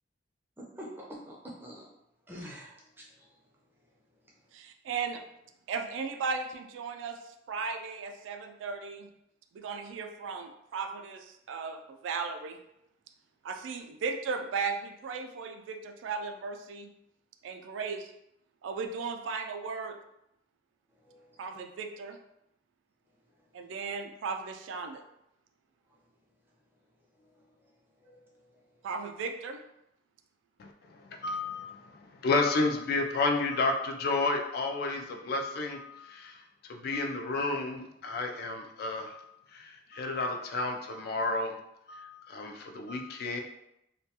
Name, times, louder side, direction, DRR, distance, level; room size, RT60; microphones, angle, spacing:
voice 1, 0.6-1.8 2.3-2.8 3.2-3.3 21.1-21.2 28.1-28.2, equal, 10° right, -3 dB, 0.4 m, -45 dB
voice 2, 4.5-5.2 5.7-7.2 7.5-9.1 9.5-12.6 13.4-16.9 17.4-18.1 18.6-20.0 21.4-22.2 23.5-25.0 28.8-29.6, right 5 dB, 80° right, 5 dB, 0.3 m, -36 dB
voice 3, 30.6-41.5 41.9-43.4, left 3 dB, 55° left, 3 dB, 0.3 m, -32 dB
2.2 x 2.2 x 2.8 m, 0.82 s
head